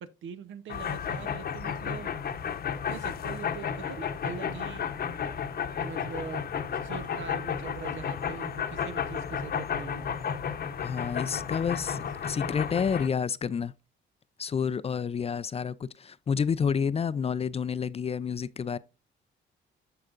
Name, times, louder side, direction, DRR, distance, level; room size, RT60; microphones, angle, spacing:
voice 1, 0.0-2.1 2.9-4.8 5.8-6.5 6.8-10.1, right 6 dB, 75° right, 0.9 m, -42 dB
sound 1, 0.7-13.1, left 7 dB, 50° left, 0.9 m, -33 dB
voice 2, 10.8-13.7 14.4-18.8, left 6 dB, 30° left, 0.4 m, -29 dB
14.0 x 4.8 x 2.5 m
cardioid pair, 90°, 20 cm